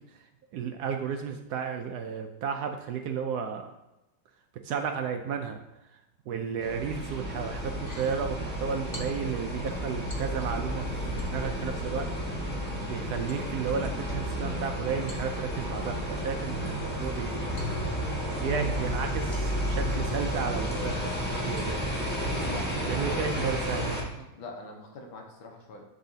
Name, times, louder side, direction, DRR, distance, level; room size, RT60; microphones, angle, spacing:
voice 1, 0.5-3.7 4.6-5.6 6.3-10.9 11.2-12.4 12.9-17.5 18.4-21.8 22.9-24.3, right 6 dB, 75° right, 5 dB, 0.9 m, -33 dB
sound 1, 6.6-24.0, equal, 5° left, 1.0 m, -32 dB
sound 2, 7.7-8.2 8.9-9.4 10.1-10.7 11.2-11.7 13.3-14.3 15.1-15.9 17.6-18.3 19.3-19.7 20.2-20.3, left 1 dB, 35° left, 0.7 m, -49 dB
voice 2, 22.5-23.8 24.3-25.9, left 2 dB, 80° left, 2 dB, 1.8 m, -43 dB
10.5 x 4.1 x 2.7 m, 0.94 s
omnidirectional pair, 2.2 m